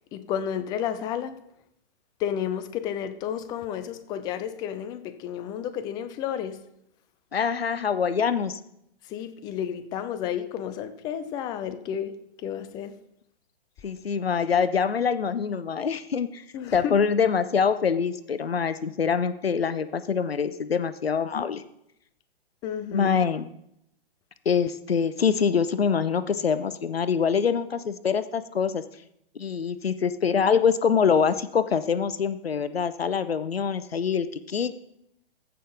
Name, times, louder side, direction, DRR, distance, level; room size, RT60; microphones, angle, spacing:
voice 1, 0.1-1.4 2.2-6.6 9.0-13.0 16.5-17.0 22.6-23.1, left 9 dB, 15° left, 11 dB, 0.4 m, -31 dB
voice 2, 7.3-8.6 13.8-16.4 16.7-21.6 22.9-23.5 24.5-28.8 29.4-34.7, left 6 dB, 85° left, 14 dB, 0.6 m, -24 dB
14.5 x 5.8 x 3.8 m, 0.78 s
figure-of-eight pair, 120°, 30 cm